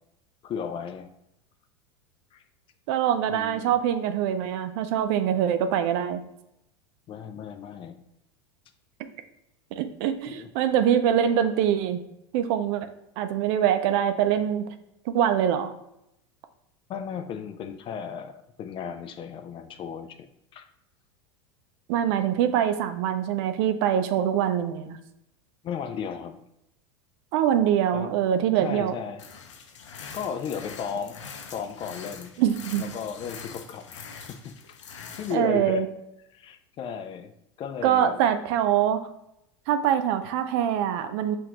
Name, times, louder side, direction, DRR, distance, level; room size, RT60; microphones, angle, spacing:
voice 1, 0.4-1.1 2.3-2.4 3.3-3.8 7.1-8.0 10.3-10.5 16.9-20.2 20.5-20.7 25.6-26.4 27.9-28.1 28.5-29.2 30.1-31.2 31.5-32.3 32.8-35.8 36.3-38.2, left 7 dB, 35° left, 8 dB, 0.4 m, -35 dB
voice 2, 2.9-6.2 9.8-12.0 12.3-12.9 13.2-14.7 15.1-15.7 21.9-25.0 27.3-28.9 32.4-32.8 35.3-35.9 37.8-39.0 39.7-41.4, right 9 dB, 60° right, 9 dB, 0.5 m, -24 dB
sound 1, 29.2-35.3, left 5 dB, 85° left, 0.6 m, -43 dB
5.8 x 2.5 x 2.9 m, 0.83 s
hypercardioid pair, 100°, 15 cm